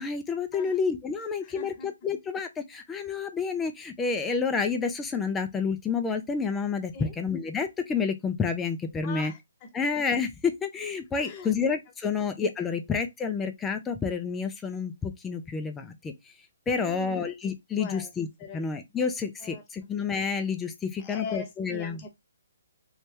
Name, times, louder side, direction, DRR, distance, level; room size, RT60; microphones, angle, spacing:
voice 1, 0.0-9.3 9.7-16.3 16.7-18.3 18.5-22.0, left 5 dB, 10° left, 0.5 m, -29 dB
voice 2, 1.4-1.9 6.9-7.1 9.0-9.7 11.2-11.5 12.1-12.2 16.8-17.3 17.8-18.1 18.4-18.6 19.4-19.6 21.0-22.1, left 4 dB, 30° left, 1.1 m, -40 dB
3.2 x 3.2 x 2.8 m
hypercardioid pair, 145°, 0 cm